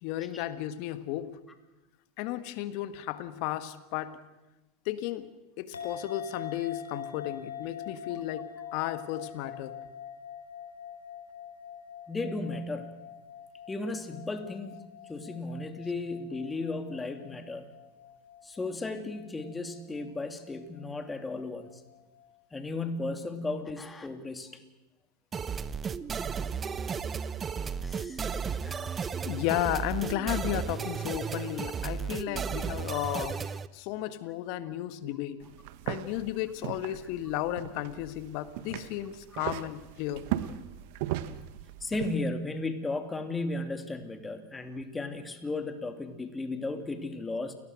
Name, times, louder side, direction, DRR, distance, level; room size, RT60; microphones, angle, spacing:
voice 1, 0.0-1.4 2.2-4.2 4.8-5.3 5.6-9.8 29.2-33.4 33.7-35.5 35.8-40.2, left 13 dB, 55° left, 12 dB, 1.7 m, -34 dB
sound 1, 5.7-22.2, left 8 dB, 85° left, 3.4 m, -45 dB
voice 2, 12.1-13.0 13.7-17.7 18.4-21.7 22.5-24.5 27.8-29.1 41.8-47.5, left 2 dB, 15° left, 7 dB, 2.8 m, -35 dB
sound 2, 25.3-33.7, right 6 dB, 25° right, 1.0 m, -34 dB
sound 3, 35.4-42.2, right 13 dB, 60° right, 1.3 m, -38 dB
29.0 x 19.0 x 6.4 m, 1.1 s
hypercardioid pair, 90°, 0 cm